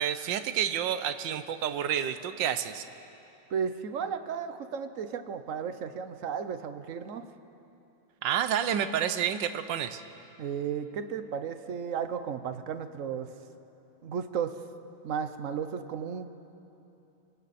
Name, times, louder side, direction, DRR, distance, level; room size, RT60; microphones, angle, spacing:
voice 1, 0.0-2.9 8.2-10.0, right 9 dB, 85° right, 11 dB, 1.5 m, -29 dB
voice 2, 3.5-7.2 10.4-13.3 14.0-14.5 15.0-16.3, right 7 dB, 55° right, 10 dB, 1.1 m, -34 dB
28.5 x 26.0 x 4.2 m, 2.9 s
omnidirectional pair, 1.9 m